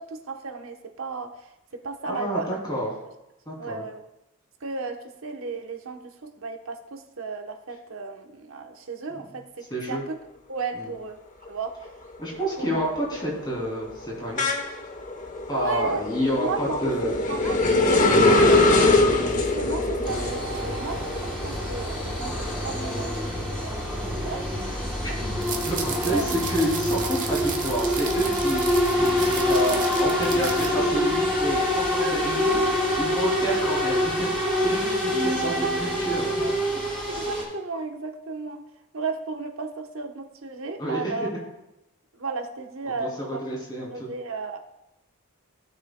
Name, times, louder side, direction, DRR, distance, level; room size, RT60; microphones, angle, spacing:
voice 1, 0.0-2.6 3.6-4.0 4.6-10.2 10.5-11.2 11.5-11.8 12.6-12.9 15.5-18.8 19.2-23.9 24.2-25.2 26.0-26.3 29.4-29.5 32.0-32.2 34.8-35.2 35.4-35.9 36.4-36.6 37.1-38.6 38.9-41.3 42.1-43.4 43.9-44.6, right 4 dB, 65° right, 5 dB, 1.0 m, -35 dB
voice 2, 2.1-2.9 3.5-3.8 9.7-10.0 10.7-10.9 12.2-14.4 15.5-17.1 17.6-17.7 25.0-25.1 25.7-32.6 33.0-36.3 40.8-41.3 42.9-44.1, right 1 dB, 20° left, -4 dB, 2.9 m, -29 dB
sound 1, 11.5-11.9 12.2-23.5 23.9-25.6, left 2 dB, 35° left, 1.0 m, -24 dB
sound 2, 20.0-37.4, left 1 dB, 5° left, 3.2 m, -26 dB
sound 3, 25.4-30.7, right 6 dB, 35° right, 1.1 m, -34 dB
16.5 x 6.7 x 2.2 m, 0.92 s
head